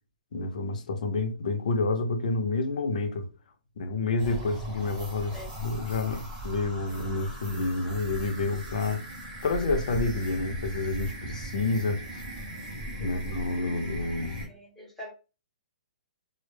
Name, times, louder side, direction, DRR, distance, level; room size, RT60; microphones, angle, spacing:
voice 1, 0.3-3.3 3.8-9.0 9.4-12.2 13.0-14.4, left 3 dB, 60° left, 0.6 m, -29 dB
sound 1, 4.2-14.5, right 1 dB, 20° right, 0.9 m, -38 dB
voice 2, 13.0-13.3 14.4-15.1, equal, 5° left, 0.9 m, -45 dB
2.1 x 2.0 x 3.1 m
hypercardioid pair, 165°, 5 cm